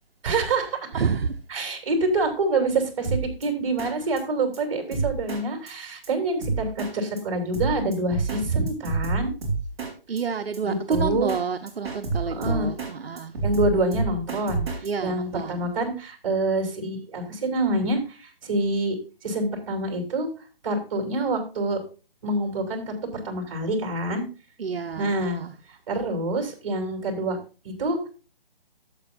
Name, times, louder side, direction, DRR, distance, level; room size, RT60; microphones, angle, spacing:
voice 1, 0.2-0.9 1.5-9.3 10.6-11.3 12.3-12.7 13.4-19.0 19.2-20.3 20.6-21.8 22.2-22.9 23.2-24.2 25.0-25.4 25.9-27.4 27.6-28.1, right 2 dB, 35° right, 3.1 m, -26 dB
voice 2, 0.9-1.3 10.1-13.3 14.8-15.7 24.6-25.5, right 5 dB, 75° right, 1.0 m, -29 dB
Drum kit, 3.0-3.4 3.8-3.9 4.2-4.3 4.5-4.6 4.9-5.4 5.7-5.8 6.0-6.1 6.4-6.9 7.2-7.3 7.5-8.4 8.7-9.9 10.2-10.3 10.5-10.6 10.9-11.4 11.7-12.9 13.2-14.9, right 4 dB, 10° right, 2.9 m, -28 dB
11.5 x 7.9 x 2.6 m
hypercardioid pair, 165°, 30 cm